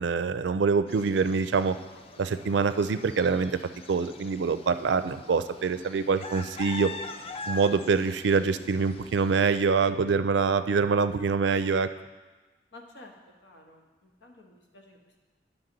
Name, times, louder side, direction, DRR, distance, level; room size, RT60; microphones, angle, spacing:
voice 1, 0.0-1.8 2.2-3.5 3.9-6.9 7.5-11.9, right 5 dB, 85° right, 12 dB, 0.4 m, -25 dB
sound 1, 0.9-9.6, left 3 dB, 35° left, 0.4 m, -43 dB
voice 2, 12.7-13.1 13.4-15.2, left 2 dB, 90° left, 1 dB, 1.3 m, -52 dB
10.5 x 5.9 x 3.9 m, 1.2 s
head